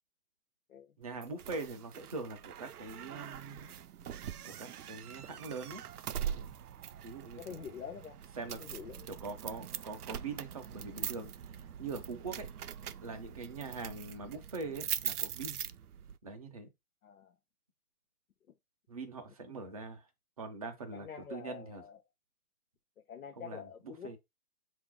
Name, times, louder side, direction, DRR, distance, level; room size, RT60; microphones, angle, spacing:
voice 1, 1.0-5.8 6.1-6.5 7.0-7.8 8.4-8.6 9.1-12.5 13.0-15.6 16.2-16.7 18.9-20.1 20.4-21.8 23.4-24.2, right 4 dB, 25° right, 0.5 m, -43 dB
sound 1, 1.2-16.2, right 9 dB, 85° right, 0.5 m, -42 dB
voice 2, 7.4-8.2 8.6-9.2 17.0-17.3 19.6-19.8 20.9-22.0 23.1-24.2, left 7 dB, 70° left, 0.8 m, -46 dB
5.6 x 2.6 x 3.6 m
hypercardioid pair, 145°, 44 cm